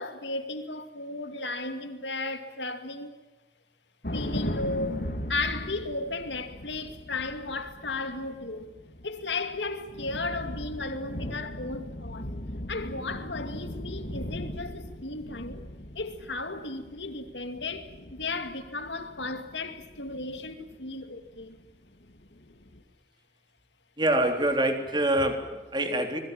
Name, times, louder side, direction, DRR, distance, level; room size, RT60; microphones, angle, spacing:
voice 1, 0.0-3.1 4.1-5.0 5.3-8.7 9.0-12.3 12.7-15.6 16.0-21.6, left 3 dB, 80° left, 2.4 m, -35 dB
sound 1, 4.0-21.7 22.0-22.8, left 1 dB, 60° left, 3.3 m, -39 dB
voice 2, 24.0-26.2, right 1 dB, 25° right, 3.6 m, -25 dB
26.0 x 22.0 x 7.4 m
head